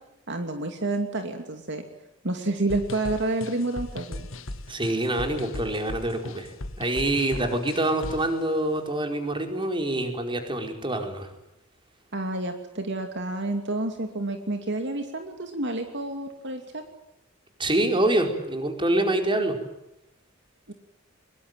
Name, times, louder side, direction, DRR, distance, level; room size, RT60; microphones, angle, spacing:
voice 1, 0.3-1.8 2.2-4.3 7.4-7.5 12.1-16.8 20.7-20.8, right 2 dB, 60° right, 5 dB, 2.7 m, -29 dB
sound 1, 2.7-8.3, left 1 dB, 70° left, 1.7 m, -38 dB
voice 2, 4.7-11.3 17.6-19.6, right 1 dB, 25° right, 5 dB, 4.7 m, -26 dB
23.5 x 23.0 x 9.2 m, 0.87 s
head